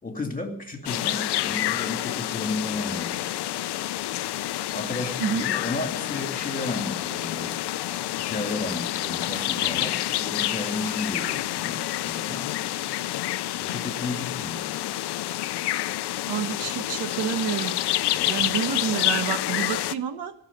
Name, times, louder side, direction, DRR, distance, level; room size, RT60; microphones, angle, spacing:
voice 1, 0.0-3.3 4.7-7.5 8.2-12.5 13.5-14.7 18.2-18.7, left 2 dB, 20° left, 4 dB, 2.4 m, -33 dB
sound 1, 0.9-19.9, left 14 dB, 75° left, 0.6 m, -28 dB
voice 2, 16.3-17.7 18.3-20.3, right 8 dB, 80° right, 9 dB, 1.3 m, -28 dB
14.5 x 6.8 x 10.0 m, 0.68 s
cardioid pair, 120°, 40 cm